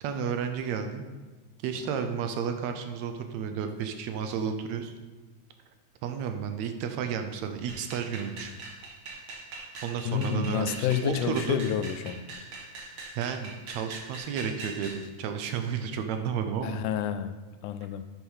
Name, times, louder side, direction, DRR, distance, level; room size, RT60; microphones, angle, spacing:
voice 1, 0.0-1.1 1.6-4.9 6.0-8.5 9.8-11.6 13.2-16.8, right 7 dB, 75° right, 7 dB, 1.8 m, -32 dB
sound 1, 7.7-15.0, right 3 dB, 50° right, 1.9 m, -42 dB
voice 2, 10.1-12.3 16.6-18.0, left 8 dB, 85° left, 10 dB, 2.1 m, -29 dB
8.2 x 6.1 x 5.5 m, 1.3 s
omnidirectional pair, 3.5 m